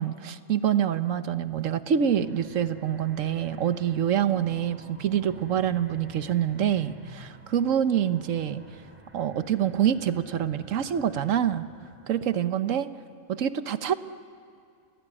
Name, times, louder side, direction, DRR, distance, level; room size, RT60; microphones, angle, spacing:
voice 1, 0.0-8.6 9.1-11.7 12.1-12.9 13.3-13.9, right 9 dB, 70° right, 11 dB, 1.3 m, -26 dB
sound 1, 2.0-12.6, right 1 dB, 10° right, 4.1 m, -50 dB
29.5 x 19.5 x 9.9 m, 2.4 s
omnidirectional pair, 1.4 m